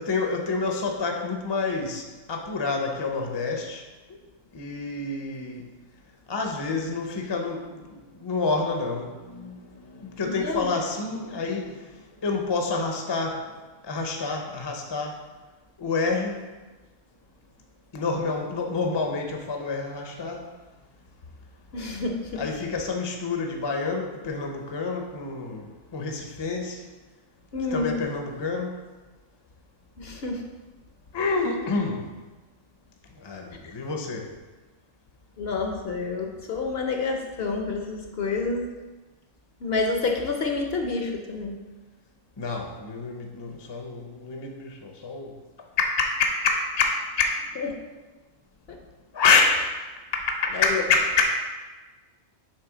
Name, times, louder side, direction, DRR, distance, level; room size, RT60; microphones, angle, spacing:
voice 1, 0.0-3.8 4.5-5.6 6.3-11.8 12.2-13.4 13.8-15.1 15.8-16.4 17.9-20.5 22.3-26.8 27.7-28.7 31.1-32.1 33.2-34.3 42.4-45.3 45.8-47.4 49.1-49.7 50.1-51.3, left 4 dB, 30° left, 2 dB, 0.5 m, -27 dB
voice 2, 10.2-10.7 21.7-22.4 27.5-28.0 30.0-30.4 33.6-33.7 35.4-38.7 39.6-41.6 47.6-47.7 48.7-48.8 50.5-50.8, left 4 dB, 55° left, 3 dB, 0.8 m, -28 dB
7.4 x 3.4 x 4.9 m, 1.2 s
omnidirectional pair, 1.3 m